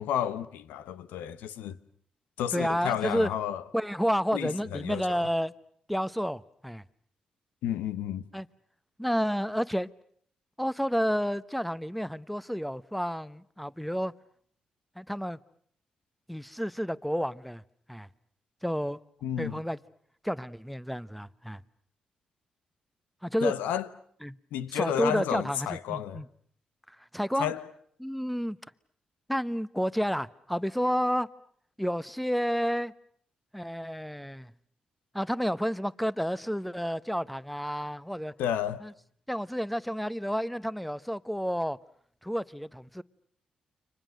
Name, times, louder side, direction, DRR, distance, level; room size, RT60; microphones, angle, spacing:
voice 1, 0.0-1.8 2.4-3.6 4.3-5.3 7.6-8.2 19.2-19.6 23.4-23.9 24.5-26.2 27.4-27.7 38.4-38.8, left 10 dB, 80° left, 1.0 m, -31 dB
voice 2, 2.5-3.3 3.7-5.5 5.9-6.8 8.3-8.5 9.0-9.9 10.6-14.1 15.0-15.4 16.3-17.6 17.9-18.1 18.6-19.0 19.4-19.8 20.2-21.6 23.2-23.5 24.2-24.3 24.7-26.3 27.1-27.5 28.0-28.6 29.3-31.3 31.8-32.9 33.5-34.5 35.1-38.3 38.8-38.9 39.3-41.8 42.2-43.0, equal, ahead, 1.0 m, -30 dB
30.0 x 24.5 x 6.5 m
hypercardioid pair, 45°, 3 cm